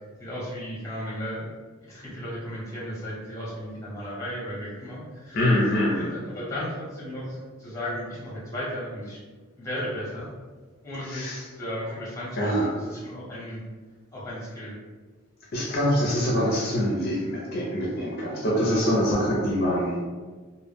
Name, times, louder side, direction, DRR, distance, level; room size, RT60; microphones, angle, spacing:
voice 1, 0.2-1.4 1.8-5.4 5.9-9.2 9.6-10.3 10.8-13.6 14.1-14.7, equal, 15° left, -6 dB, 0.7 m, -35 dB
voice 2, 5.3-6.1 11.0-11.4 12.4-12.8 15.5-20.0, equal, 50° left, -4 dB, 0.5 m, -24 dB
2.1 x 2.1 x 3.3 m, 1.4 s
head